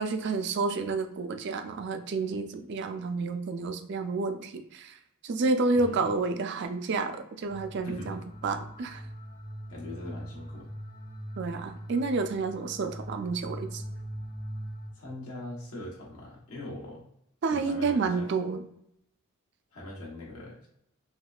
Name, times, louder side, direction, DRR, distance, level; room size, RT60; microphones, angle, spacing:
voice 1, 0.0-4.9 5.2-9.0 11.4-13.8 17.4-18.6, right 3 dB, 55° right, 8 dB, 0.4 m, -30 dB
voice 2, 5.7-6.0 7.8-8.2 9.7-10.7 14.9-17.1 17.5-18.3 19.7-20.7, left 2 dB, 85° left, -4 dB, 1.0 m, -41 dB
sound 1, 7.5-14.9, equal, 40° left, 0.7 m, -41 dB
3.5 x 3.0 x 2.3 m, 0.75 s
head